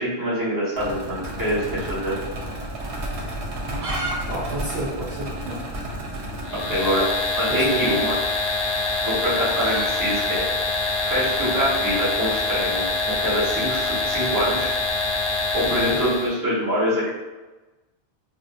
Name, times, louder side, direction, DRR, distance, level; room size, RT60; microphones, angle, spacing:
voice 1, 0.0-2.1 6.7-7.0 7.4-8.1 9.0-10.4 11.0-14.7 15.5-17.1, equal, 20° right, -9 dB, 0.9 m, -25 dB
sound 1, 0.8-6.9, right 1 dB, 85° right, 0.9 m, -32 dB
sound 2, 1.2-2.6 2.8-2.9 3.4-4.2 4.4-4.5 4.8-4.9 5.4-5.6 6.7-6.9 8.0-12.3, right 2 dB, 50° right, 0.4 m, -34 dB
voice 2, 4.3-5.6 7.5-8.0 15.6-16.0, right 1 dB, 65° right, -7 dB, 0.8 m, -30 dB
sound 3, 6.4-16.3, left 3 dB, 45° left, 0.4 m, -25 dB
2.7 x 2.1 x 2.4 m, 1.1 s
omnidirectional pair, 1.1 m